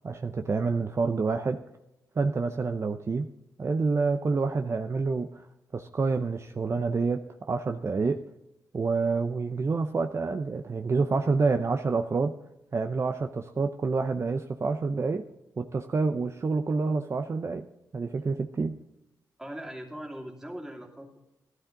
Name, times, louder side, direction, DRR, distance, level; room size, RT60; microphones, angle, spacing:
voice 1, 0.0-1.6 2.2-3.3 3.6-5.5 5.7-8.2 8.7-12.3 12.7-15.2 15.6-18.8, right 4 dB, 40° right, 7 dB, 0.7 m, -28 dB
voice 2, 19.4-21.2, equal, 10° right, -1 dB, 2.8 m, -40 dB
12.5 x 12.0 x 3.9 m, 0.94 s
cardioid pair, 70°, 7 cm